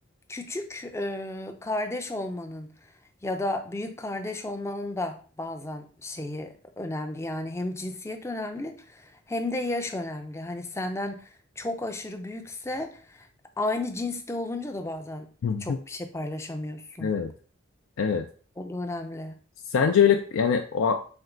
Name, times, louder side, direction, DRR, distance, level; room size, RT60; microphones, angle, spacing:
voice 1, 0.3-2.7 3.2-11.3 11.6-13.3 13.6-15.3 15.6-17.1 18.6-19.4, left 2 dB, 15° left, 5 dB, 0.4 m, -33 dB
voice 2, 15.4-15.8 17.0-17.3 18.0-18.3 19.7-20.9, left 7 dB, 85° left, 5 dB, 0.4 m, -23 dB
4.4 x 2.2 x 3.7 m, 0.41 s
head